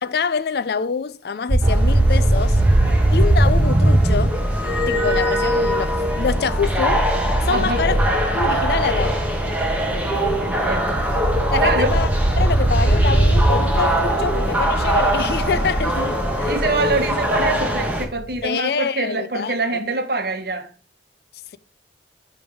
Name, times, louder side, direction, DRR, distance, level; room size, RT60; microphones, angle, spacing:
voice 1, 0.0-2.6 3.1-4.4 4.9-7.1 7.4-8.0 8.3-9.2 11.5-12.1 12.4-16.6 18.4-19.8, left 5 dB, 60° left, 0.4 m, -25 dB
sound 1, 1.5-18.3, right 1 dB, 25° right, 0.5 m, -21 dB
sound 2, 1.6-18.0, equal, 10° right, 1.3 m, -24 dB
voice 2, 7.5-7.9 9.9-11.0 11.6-12.0 16.4-20.7, right 2 dB, 60° right, 1.1 m, -25 dB
9.0 x 3.4 x 4.6 m
head